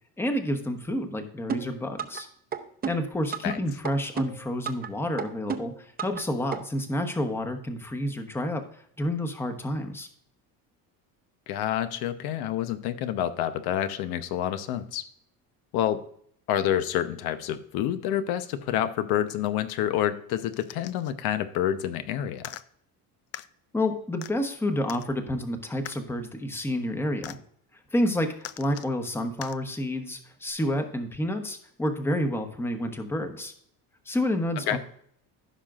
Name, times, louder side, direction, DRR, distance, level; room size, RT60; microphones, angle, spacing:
voice 1, 0.2-2.3 2.8-10.1 23.7-27.4 27.9-33.5 34.1-34.8, left 1 dB, 5° left, 5 dB, 1.0 m, -29 dB
sound 1, 1.5-2.2 2.5-3.6 3.8-4.9 5.2-6.2 6.5-6.6, right 7 dB, 25° right, 0.8 m, -32 dB
voice 2, 11.5-15.0 15.7-16.0 16.5-22.5 34.7-34.8, left 11 dB, 75° left, 10 dB, 0.9 m, -28 dB
sound 2, 20.5-21.1 22.4-22.6 23.3-23.5 24.2-24.3 24.9-25.1 25.8-26.0 27.2-27.4 28.4-28.9 29.4-29.6 30.5-30.6, left 13 dB, 45° left, 0.4 m, -41 dB
15.0 x 5.8 x 2.4 m, 0.65 s
cardioid pair, 145°, 38 cm